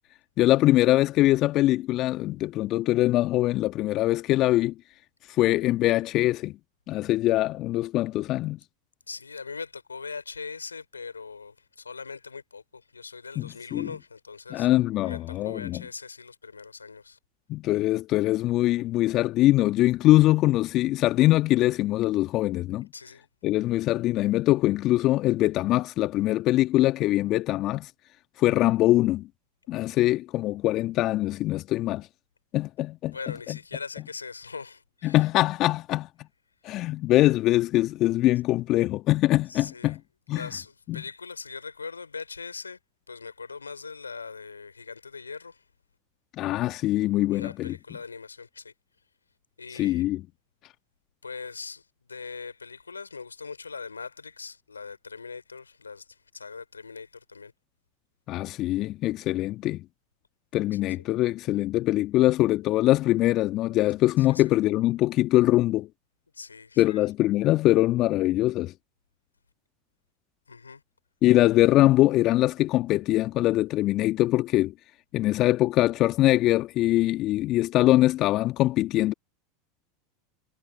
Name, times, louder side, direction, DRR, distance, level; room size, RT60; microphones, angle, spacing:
voice 1, 0.4-4.7 5.3-6.5 6.9-8.6 13.4-13.9 14.5-15.8 17.5-22.9 23.4-27.9 28.4-29.3 29.7-32.1 32.5-33.2 33.5-33.6 35.0-36.1 36.6-40.0 40.3-40.5 40.9-41.0 46.4-47.7 49.8-50.2 58.3-59.8 60.5-65.9 66.8-68.7 71.2-74.7 75.1-79.1, left 16 dB, 45° left, 1.4 m, -23 dB
voice 2, 9.1-14.7 15.0-17.2 22.9-23.3 33.1-35.2 39.5-40.0 40.3-42.8 43.1-45.6 47.3-48.7 49.6-50.1 51.2-57.5 60.7-61.0 64.2-64.5 66.3-67.1 70.5-70.8, left 5 dB, 85° left, 3.7 m, -41 dB
figure-of-eight pair, 85°, 0 cm